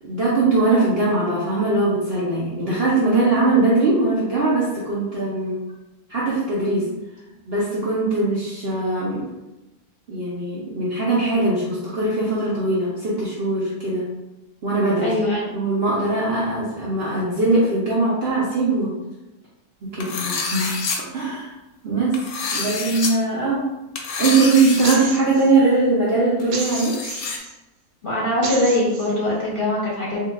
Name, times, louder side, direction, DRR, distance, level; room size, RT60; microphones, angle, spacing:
voice 1, 0.0-5.6 6.1-6.9 7.5-9.3 10.1-14.0 14.6-15.1 15.5-19.0 19.8-20.8 21.1-21.5 21.8-22.2 22.5-23.7 24.2-27.0, right 2 dB, 55° right, -6 dB, 0.7 m, -21 dB
voice 2, 15.0-15.6 16.1-16.3 28.0-30.2, left 1 dB, 40° left, -6 dB, 0.8 m, -22 dB
sound 1, 20.0-21.0 22.1-23.1 24.0-25.0 25.3-25.4 26.4-27.4, left 4 dB, 75° left, 1.0 m, -27 dB
sound 2, 24.8-25.5 26.5-27.5 28.4-29.1, right 4 dB, 75° right, 1.1 m, -31 dB
4.5 x 2.4 x 2.4 m, 0.99 s
omnidirectional pair, 1.6 m